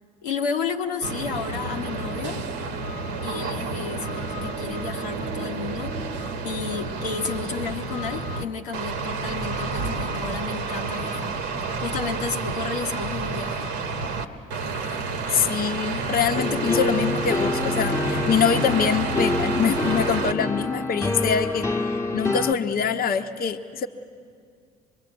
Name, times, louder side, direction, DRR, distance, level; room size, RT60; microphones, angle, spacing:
voice 1, 0.2-2.4 3.2-5.9 6.4-11.4 11.8-13.7, left 5 dB, 90° left, 0 dB, 1.2 m, -31 dB
sound 1, 1.0-8.4 8.7-14.2 14.5-20.3, right 3 dB, 80° right, 1.3 m, -30 dB
voice 2, 15.3-21.7 22.1-23.9, left 7 dB, 50° left, 5 dB, 1.0 m, -24 dB
sound 2, 16.3-22.5, left 2 dB, 15° left, 1.2 m, -27 dB
25.0 x 21.5 x 7.9 m, 2.2 s
hypercardioid pair, 55°, 20 cm